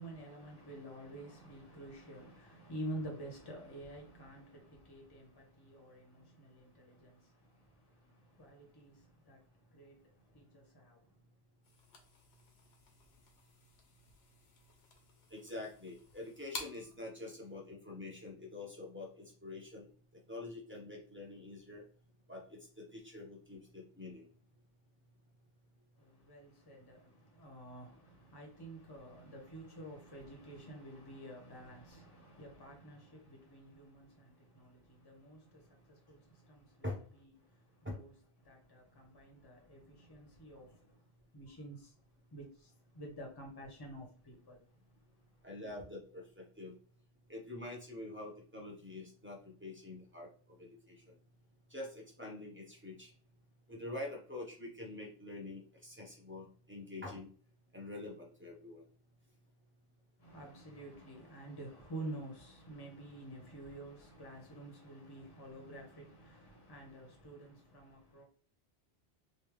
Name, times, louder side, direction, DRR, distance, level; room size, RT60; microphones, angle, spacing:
voice 1, 0.0-11.2 26.0-36.9 37.1-38.1 38.4-41.0 41.3-42.0 42.3-44.6 44.9-45.5 60.2-68.2, right 1 dB, 25° left, 0.9 m, -49 dB
sound 1, 11.6-17.0, left 3 dB, 75° left, 1.0 m, -52 dB
voice 2, 15.3-19.9 20.3-21.8 22.3-24.3 36.8-37.0 37.8-38.0 45.4-46.7 47.3-51.0 51.7-53.1 53.7-57.3 57.7-58.8, left 2 dB, 10° right, 1.0 m, -46 dB
3.4 x 2.8 x 3.2 m
omnidirectional pair, 1.1 m